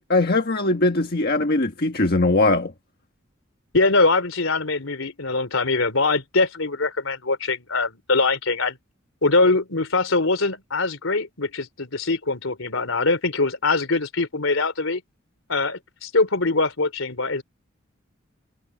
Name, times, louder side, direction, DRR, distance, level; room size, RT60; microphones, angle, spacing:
voice 1, 0.0-2.7, left 2 dB, 50° left, 1.5 m, -20 dB
voice 2, 3.7-8.8 9.2-15.0 15.5-17.4, left 3 dB, 80° left, 3.3 m, -22 dB
head